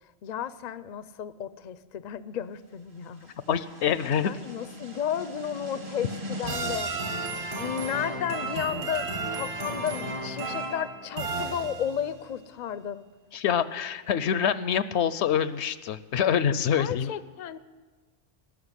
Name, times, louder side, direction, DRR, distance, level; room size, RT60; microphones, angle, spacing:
voice 1, 0.2-3.3 4.2-6.9 7.6-13.0 16.8-17.6, left 9 dB, 50° left, 14 dB, 0.6 m, -33 dB
sound 1, 3.3-12.2, right 2 dB, 50° right, 1.9 m, -34 dB
voice 2, 3.5-4.3 13.3-17.1, left 8 dB, 75° left, 15 dB, 0.9 m, -26 dB
18.0 x 6.6 x 9.8 m, 1.3 s
omnidirectional pair, 1.2 m